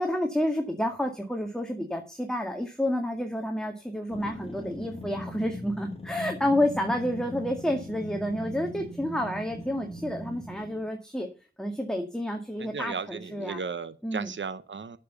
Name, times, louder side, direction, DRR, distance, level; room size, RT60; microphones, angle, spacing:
voice 1, 0.0-11.3 11.6-13.6 14.0-14.3, left 1 dB, 5° left, 2.0 m, -29 dB
sound 1, 4.1-10.9, left 1 dB, 30° left, 2.8 m, -40 dB
voice 2, 12.6-15.0, right 5 dB, 80° right, 0.8 m, -35 dB
9.9 x 7.0 x 6.9 m
wide cardioid pair, 45°, 19 cm